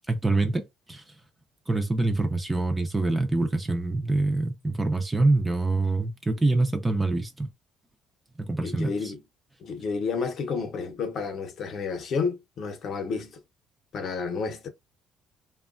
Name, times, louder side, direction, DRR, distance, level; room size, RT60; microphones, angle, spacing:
voice 1, 0.1-1.0 1.7-7.5 8.4-9.1, right 2 dB, 10° right, 0.4 m, -25 dB
voice 2, 8.6-9.2 9.6-13.4 13.9-14.7, left 5 dB, 45° left, 0.7 m, -31 dB
2.9 x 2.2 x 2.4 m
cardioid pair, 150°, 0 cm